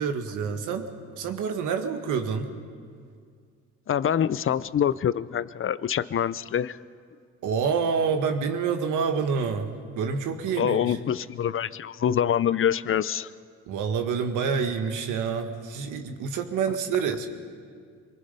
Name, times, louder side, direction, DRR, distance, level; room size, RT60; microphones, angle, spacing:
voice 1, 0.0-2.5 7.4-11.0 13.7-17.3, right 6 dB, 85° right, 5 dB, 1.8 m, -27 dB
voice 2, 3.9-6.8 10.6-13.3, left 9 dB, 45° left, 16 dB, 0.7 m, -25 dB
25.5 x 23.0 x 5.5 m, 2.1 s
cardioid pair, 90°, 30 cm